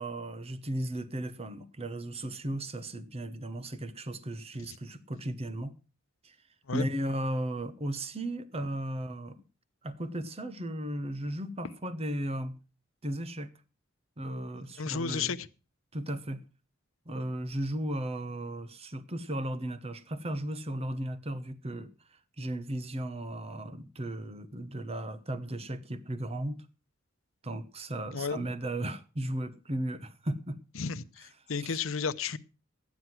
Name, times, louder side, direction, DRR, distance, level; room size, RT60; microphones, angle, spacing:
voice 1, 0.0-5.7 6.2-6.3 6.7-9.4 9.8-12.6 13.0-13.5 14.2-15.4 15.9-16.4 17.1-21.9 22.4-26.6 27.4-30.6 31.6-31.8, right 1 dB, 30° right, 1.0 m, -35 dB
voice 2, 14.8-15.5 28.1-28.5 30.8-32.4, left 5 dB, 90° left, 0.8 m, -33 dB
13.0 x 9.6 x 5.9 m
head